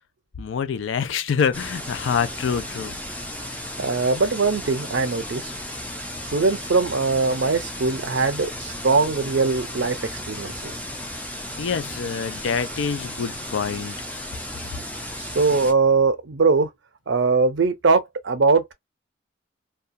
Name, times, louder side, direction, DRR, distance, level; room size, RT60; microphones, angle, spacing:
voice 1, 0.4-2.9 11.6-14.0, left 6 dB, 80° left, 0.4 m, -26 dB
sound 1, 1.5-15.7, left 1 dB, 10° left, 0.4 m, -34 dB
voice 2, 3.8-5.5 6.3-10.7 15.2-16.7 17.1-18.7, right 4 dB, 70° right, 0.6 m, -21 dB
2.3 x 2.2 x 2.6 m
head